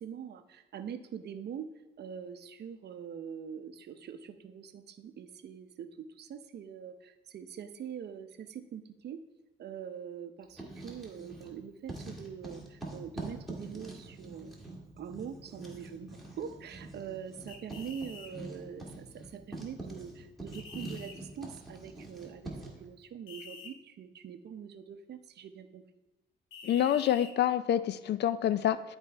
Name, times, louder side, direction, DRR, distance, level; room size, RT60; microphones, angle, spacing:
voice 1, 0.0-1.7 2.0-9.2 9.6-14.5 15.0-22.5 22.8-25.8, right 8 dB, 55° right, 9 dB, 0.6 m, -43 dB
Writing, 10.4-11.6 11.9-22.8, right 2 dB, ahead, 2.0 m, -45 dB
sound 1, 17.5-18.3 20.5-21.2 23.3-23.7 26.5-27.3, left 4 dB, 90° left, 0.9 m, -47 dB
voice 2, 26.6-29.0, left 10 dB, 60° left, 15 dB, 0.4 m, -27 dB
11.5 x 4.4 x 3.3 m, 1.0 s
cardioid pair, 90°, 20 cm